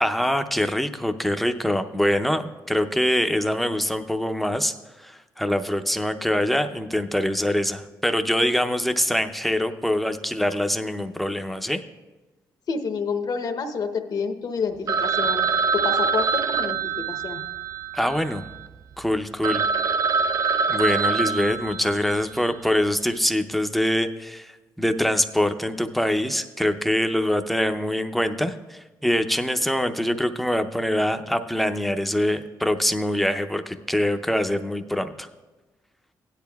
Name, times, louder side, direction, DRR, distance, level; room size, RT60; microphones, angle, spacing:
voice 1, 0.0-4.7 5.0-11.8 17.9-18.4 19.0-19.6 20.7-24.5 24.8-35.3, equal, ahead, 7 dB, 0.6 m, -24 dB
voice 2, 12.7-17.4, left 5 dB, 60° left, 6 dB, 0.9 m, -29 dB
Telephone, 14.9-18.7 19.1-19.2 19.4-22.3, right 5 dB, 45° right, 0.3 m, -24 dB
16.5 x 10.5 x 2.3 m, 1.2 s
cardioid pair, 85°, 8 cm